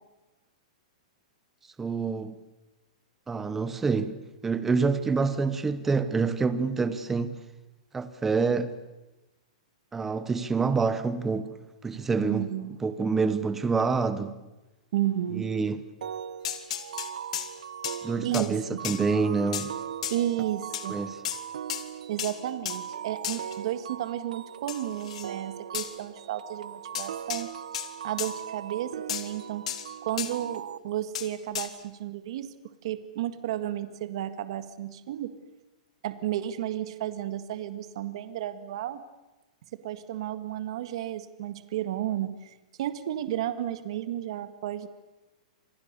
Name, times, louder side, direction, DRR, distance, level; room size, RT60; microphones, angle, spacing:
voice 1, 1.8-2.4 3.3-7.4 7.9-8.8 9.9-11.5 11.8-12.5 12.8-14.4 15.3-15.8 18.0-19.7 20.9-21.2, right 4 dB, 5° right, 0.9 m, -27 dB
voice 2, 12.2-12.7 14.9-15.5 18.2-18.8 20.1-21.0 22.1-27.5 28.0-29.6 30.0-32.5 32.8-35.3 36.0-39.0 39.8-44.9, right 12 dB, 45° right, 1.8 m, -32 dB
sound 1, 16.0-30.8, right 8 dB, 85° right, 1.2 m, -40 dB
sound 2, 16.4-17.5 17.8-18.0 18.3-18.5 18.8-19.0 19.5-19.7 20.0-20.2 20.7-20.9 21.2-21.4 21.7-21.8 22.2-22.4 22.7-22.8 23.2-23.6 24.7-25.3 25.7-25.9 26.9-27.5 27.7-27.9 28.2-28.3 29.1-29.3 29.7-29.9 30.2-30.3 31.1-31.3 31.5-31.7, left 10 dB, 55° left, 2.9 m, -33 dB
29.5 x 27.5 x 6.9 m
supercardioid pair, 175°, 4 cm